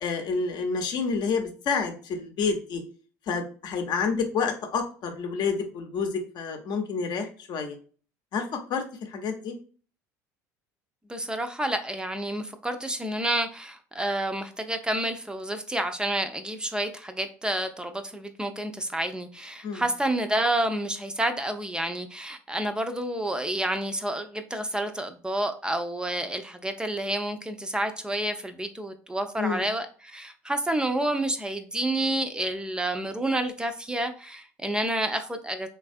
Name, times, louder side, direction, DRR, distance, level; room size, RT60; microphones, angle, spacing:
voice 1, 0.0-2.8 3.3-7.7 8.3-9.5 19.6-19.8 29.4-29.7, left 5 dB, 50° left, 4 dB, 0.7 m, -29 dB
voice 2, 11.1-35.7, right 1 dB, 10° right, 7 dB, 0.4 m, -29 dB
3.2 x 2.3 x 2.5 m, 0.40 s
hypercardioid pair, 75°, 9 cm